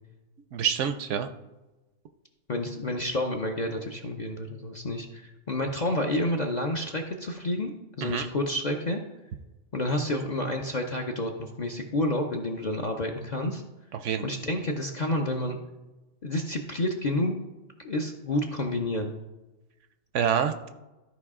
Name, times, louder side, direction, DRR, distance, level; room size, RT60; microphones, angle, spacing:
voice 1, 0.5-1.3 8.0-8.3 13.9-14.3 20.1-20.7, right 8 dB, 70° right, 9 dB, 0.8 m, -27 dB
voice 2, 2.5-7.7 8.0-9.0 9.7-13.6 14.2-15.6 16.2-17.5 17.8-19.1, left 1 dB, 45° left, 2 dB, 0.6 m, -29 dB
13.0 x 4.7 x 3.6 m, 1.1 s
omnidirectional pair, 1.4 m